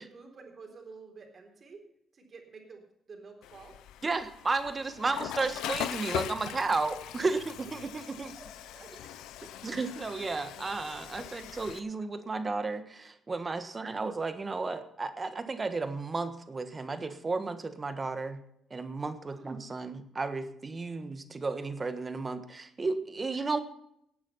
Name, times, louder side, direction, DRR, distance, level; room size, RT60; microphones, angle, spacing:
voice 1, 0.0-1.8 2.1-3.8 6.1-7.7 8.4-9.2 11.4-11.6 19.3-19.6, right 4 dB, 50° right, 3 dB, 3.7 m, -51 dB
Water / Toilet flush, 3.4-11.8, left 11 dB, 90° left, 0.6 m, -40 dB
voice 2, 4.0-8.3 9.6-18.4 18.7-23.6, right 3 dB, 30° right, 10 dB, 1.4 m, -33 dB
17.5 x 8.7 x 5.7 m, 0.74 s
cardioid pair, 70°, 0 cm